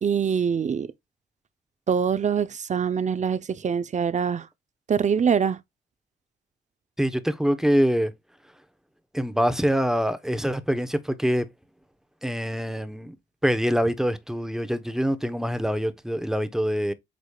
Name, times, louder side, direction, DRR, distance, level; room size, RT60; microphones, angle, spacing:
voice 1, 0.0-0.9 1.9-4.5 4.9-5.6, right 7 dB, 35° right, 0.7 m, -24 dB
voice 2, 7.0-8.1 9.1-11.5 12.2-13.1 13.4-16.9, equal, ahead, 0.9 m, -24 dB
8.3 x 5.0 x 2.3 m
cardioid pair, 90°, 20 cm